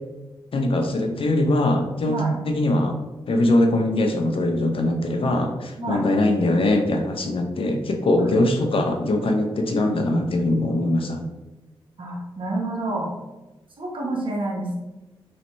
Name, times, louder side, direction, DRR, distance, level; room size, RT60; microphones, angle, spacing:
voice 1, 0.5-3.0 3.3-11.2, left 1 dB, 65° left, 4 dB, 0.7 m, -22 dB
voice 2, 12.0-13.1 13.8-14.8, right 2 dB, 60° right, -1 dB, 1.2 m, -28 dB
3.1 x 2.8 x 4.2 m, 1.0 s
cardioid pair, 45°, 10 cm